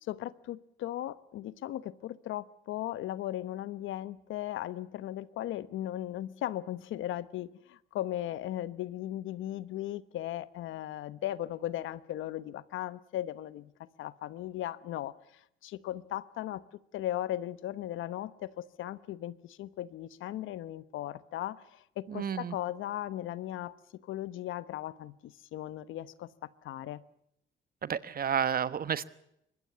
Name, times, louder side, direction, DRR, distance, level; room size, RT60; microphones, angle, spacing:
voice 1, 0.0-16.6 16.9-23.7 24.0-27.0, left 13 dB, 85° left, 16 dB, 1.1 m, -37 dB
voice 2, 22.1-22.5 27.8-29.1, right 8 dB, 50° right, 15 dB, 1.2 m, -31 dB
24.5 x 20.5 x 6.9 m, 0.79 s
cardioid pair, 90°, 20 cm